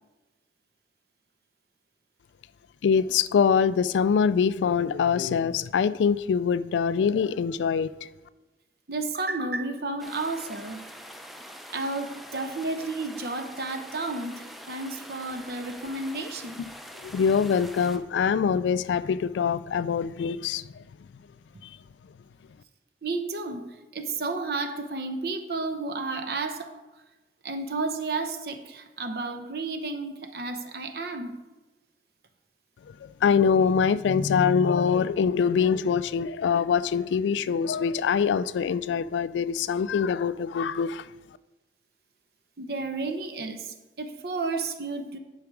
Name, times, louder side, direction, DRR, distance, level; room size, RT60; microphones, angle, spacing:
voice 1, 2.8-7.9 17.0-20.6 33.0-41.0, left 6 dB, 90° left, 0.3 m, -24 dB
voice 2, 8.9-10.9 11.7-16.7 23.0-26.7 27.4-31.4 42.6-45.2, right 3 dB, 60° right, 0.8 m, -32 dB
sound 1, 10.0-18.0, equal, ahead, 0.5 m, -44 dB
10.5 x 4.9 x 4.6 m
head